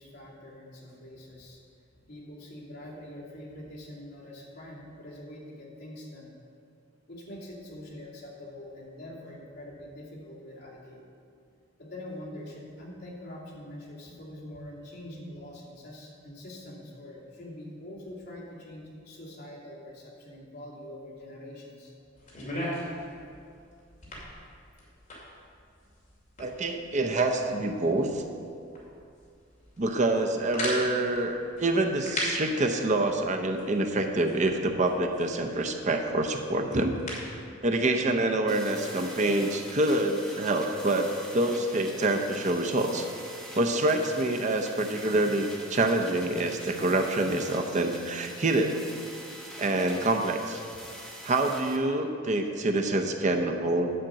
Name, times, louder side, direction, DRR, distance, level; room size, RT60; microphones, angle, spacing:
voice 1, 0.0-1.6 1.9-6.3 7.1-11.0 11.8-21.9 49.2-49.4, left 1 dB, 60° left, -6 dB, 2.5 m, -44 dB
sound 1, 22.2-37.4, left 1 dB, 40° left, 2.6 m, -40 dB
voice 2, 26.4-28.2 29.8-37.0 37.6-43.1 43.6-48.8 49.6-50.6 51.2-53.9, right 2 dB, 40° right, 4 dB, 0.6 m, -26 dB
sound 2, 38.5-51.8, equal, 5° left, 1.1 m, -45 dB
10.5 x 5.1 x 7.5 m, 2.4 s
head